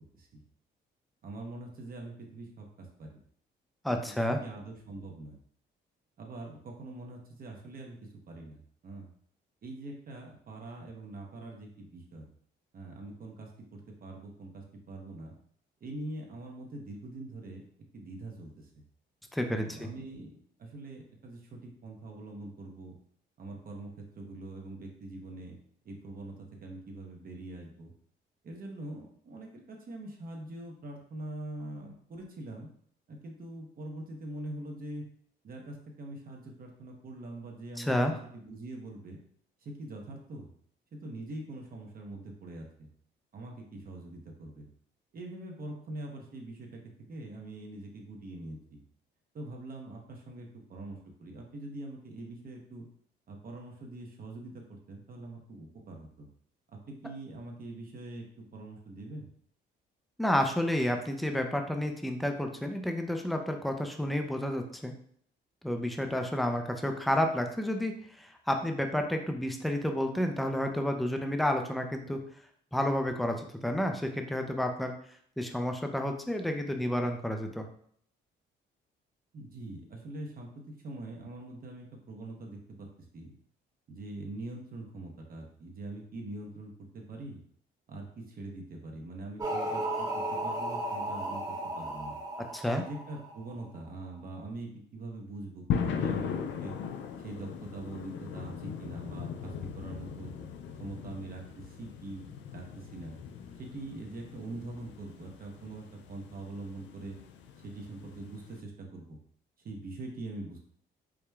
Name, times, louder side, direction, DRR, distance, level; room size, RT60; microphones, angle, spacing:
voice 1, 1.2-3.2 4.3-5.4 6.2-8.0 8.3-9.1 9.6-12.3 12.7-15.3 15.8-17.6 17.9-18.7 19.5-22.9 23.4-25.6 25.8-27.9 28.4-32.7 33.1-35.0 35.4-39.2 39.6-40.5 40.9-42.9 43.3-44.7 45.1-46.8 47.1-48.8 49.3-52.9 53.3-56.3 56.7-59.3 79.3-82.9 83.1-83.3 83.9-87.4 87.9-92.2 92.7-96.3 96.6-96.8 97.2-100.3 100.7-102.2 102.5-103.2 103.6-107.2 107.6-109.2 109.6-110.6, right 2 dB, 45° right, 1 dB, 0.8 m, -43 dB
voice 2, 3.8-4.4 19.3-19.9 37.8-38.2 60.2-64.9 65.6-72.2 72.7-74.9 75.4-77.6 92.5-92.8, left 1 dB, ahead, 4 dB, 0.5 m, -30 dB
sound 1, 89.4-93.6, right 1 dB, 20° right, 0.9 m, -34 dB
sound 2, 95.7-108.6, left 7 dB, 70° left, 0.5 m, -39 dB
4.8 x 2.1 x 3.4 m, 0.62 s
cardioid pair, 90°, 20 cm